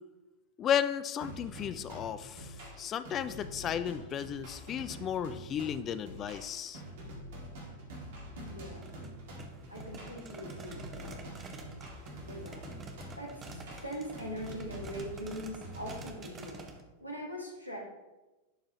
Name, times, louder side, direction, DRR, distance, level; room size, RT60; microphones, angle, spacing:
voice 1, 0.6-6.8, left 9 dB, 30° left, 13 dB, 0.4 m, -34 dB
sound 1, 1.2-16.0, equal, 55° right, 1.9 m, -46 dB
voice 2, 8.4-8.9 9.7-11.3 12.2-12.6 13.2-16.7 17.0-17.8, equal, 85° right, -1 dB, 1.7 m, -42 dB
sound 2, 8.8-16.8, right 2 dB, 25° right, 1.0 m, -49 dB
11.0 x 4.8 x 2.9 m, 1.1 s
figure-of-eight pair, 90°, 0 cm